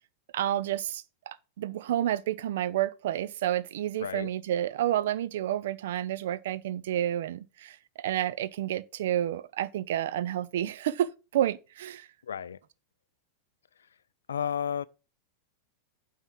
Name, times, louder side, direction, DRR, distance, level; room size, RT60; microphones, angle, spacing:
voice 1, 0.3-12.1, right 12 dB, 55° right, 0.5 m, -30 dB
voice 2, 4.0-4.3 12.2-12.6 14.3-14.8, left 8 dB, 65° left, 0.4 m, -32 dB
8.9 x 3.6 x 5.9 m
figure-of-eight pair, 90°, 0 cm